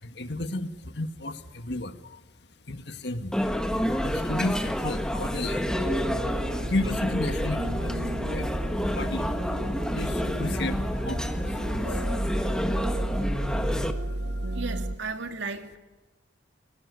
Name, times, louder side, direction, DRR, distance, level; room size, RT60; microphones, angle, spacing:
voice 1, 0.0-2.2 2.7-3.5 4.0-6.3 6.6-9.4 9.9-12.4 12.7-12.8 14.2-14.6, left 1 dB, 60° left, 8 dB, 1.9 m, -34 dB
sound 1, 3.3-13.9, equal, 5° left, 1.5 m, -29 dB
sound 2, 5.7-15.0, right 1 dB, 65° right, 1.6 m, -33 dB
voice 2, 14.5-15.8, right 4 dB, 80° right, 6 dB, 2.6 m, -34 dB
28.5 x 18.0 x 9.6 m, 1.2 s
head